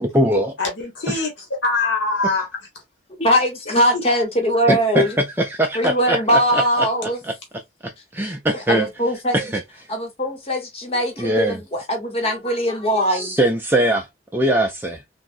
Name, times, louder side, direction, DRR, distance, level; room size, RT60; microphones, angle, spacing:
voice 1, 0.0-0.5 4.7-5.1 5.6-6.9 7.8-8.9 9.3-9.6 11.2-11.6 13.1-14.1 14.3-15.0, right 1 dB, 10° right, 0.3 m, -21 dB
voice 2, 0.6-2.5 2.7-2.8 3.9-4.0, left 3 dB, 80° left, 1.0 m, -23 dB
voice 3, 3.2-5.1 5.7-7.2 8.7-9.4 9.9-13.3, equal, 30° left, 0.9 m, -21 dB
3.4 x 2.1 x 2.4 m
head